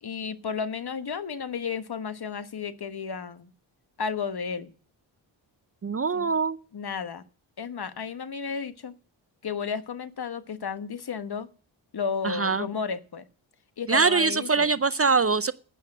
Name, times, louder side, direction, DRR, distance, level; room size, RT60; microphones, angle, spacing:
voice 1, 0.0-3.5 4.0-4.7 6.1-6.3 6.7-7.2 7.6-8.9 9.4-11.5 11.9-13.2 13.8-14.7, left 6 dB, 50° left, 12 dB, 1.2 m, -33 dB
voice 2, 5.8-6.6 12.2-12.7 13.9-15.5, right 4 dB, 30° right, 16 dB, 0.5 m, -23 dB
9.6 x 8.5 x 7.6 m, 0.42 s
cardioid pair, 60°, 48 cm